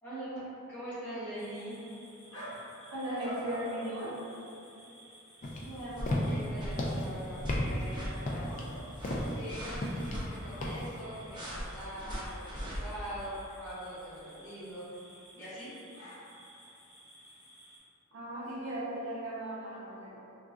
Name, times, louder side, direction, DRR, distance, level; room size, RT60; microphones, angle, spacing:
voice 1, 0.0-1.8 5.6-8.6 9.3-15.7, right 1 dB, 10° left, -14 dB, 1.2 m, -43 dB
sound 1, 1.3-17.8, equal, 65° left, 0.9 m, -51 dB
voice 2, 2.9-4.2 18.1-20.2, right 1 dB, 65° right, -7 dB, 0.7 m, -37 dB
sound 2, 5.4-11.0, left 1 dB, 35° left, 0.3 m, -34 dB
sound 3, 6.0-6.3 6.6-6.9 7.4-7.6 7.9-8.1 8.9-10.3 11.3-12.8, equal, 20° right, 0.5 m, -38 dB
3.9 x 2.4 x 2.4 m, 2.7 s
head